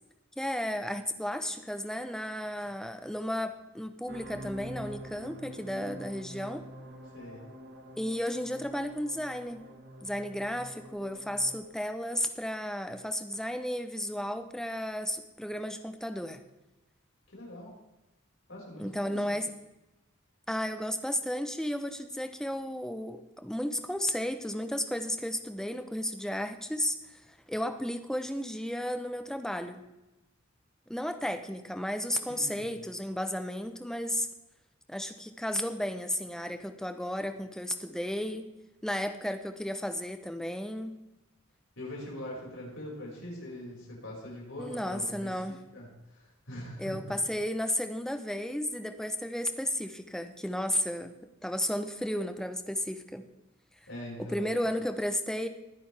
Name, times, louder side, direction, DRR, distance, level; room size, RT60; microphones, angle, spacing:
voice 1, 0.4-6.6 8.0-9.7 10.0-16.4 18.8-19.5 20.5-27.2 27.5-29.8 30.9-34.3 34.9-38.5 38.8-41.0 44.6-45.6 46.8-53.2 54.3-55.5, equal, 5° left, 7 dB, 0.8 m, -33 dB
sound 1, 4.1-11.7, equal, 55° right, 1.5 m, -46 dB
voice 2, 17.3-17.7 18.5-19.4 32.3-32.7 41.8-47.0 53.9-54.5, left 1 dB, 70° left, -3 dB, 5.7 m, -43 dB
20.5 x 10.0 x 3.4 m, 1.0 s
head